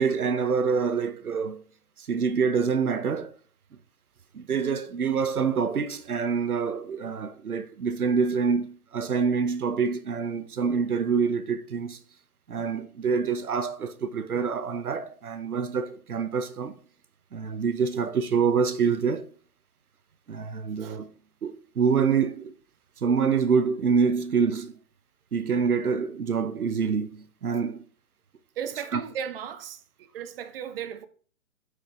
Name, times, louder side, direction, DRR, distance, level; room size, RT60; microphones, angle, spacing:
voice 1, 0.0-1.6 2.0-3.3 4.3-12.0 12.5-16.7 17.3-19.3 20.3-21.1 21.4-22.5 23.0-24.8 25.3-27.8 28.9-29.0, right 6 dB, 90° right, 0.8 m, -26 dB
voice 2, 28.6-31.1, right 8 dB, 40° right, 0.9 m, -36 dB
8.4 x 5.0 x 3.0 m
figure-of-eight pair, 130°, 43 cm